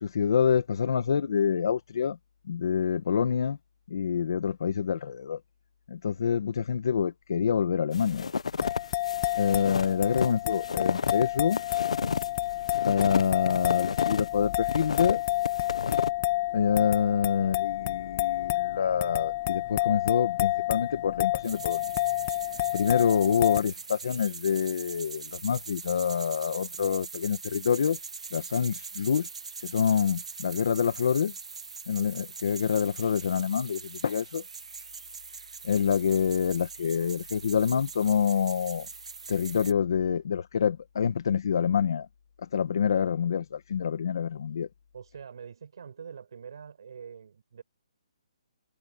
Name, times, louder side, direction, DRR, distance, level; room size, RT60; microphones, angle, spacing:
voice 1, 0.0-2.2 2.5-3.6 3.9-5.4 5.9-8.3 9.4-11.6 12.8-15.2 16.5-21.9 22.7-28.0 28.3-29.3 29.6-31.3 31.9-34.4 35.6-38.9 39.3-42.1 42.4-44.7, left 7 dB, 40° left, 1.4 m, -27 dB
sound 1, 7.9-14.3 14.6-16.1, left 5 dB, 75° left, 0.7 m, -32 dB
sound 2, 8.6-23.6, left 17 dB, 20° left, 1.2 m, -29 dB
sound 3, 21.4-39.7, right 5 dB, 85° right, 2.4 m, -42 dB
voice 2, 23.3-23.6 44.9-47.6, right 7 dB, 45° right, 6.8 m, -45 dB
hypercardioid pair, 180°, 3 cm